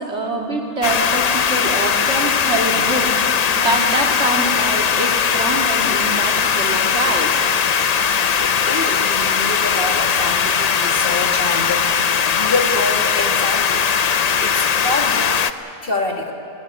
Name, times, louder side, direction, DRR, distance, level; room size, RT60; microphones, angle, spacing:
voice 1, 0.0-7.3, right 2 dB, 50° right, 0 dB, 2.7 m, -24 dB
sound 1, 0.8-15.5, left 7 dB, 90° left, 0.3 m, -19 dB
voice 2, 8.4-15.5 15.8-16.3, left 2 dB, 40° left, 2 dB, 1.9 m, -26 dB
18.5 x 18.5 x 9.6 m, 2.6 s
omnidirectional pair, 1.5 m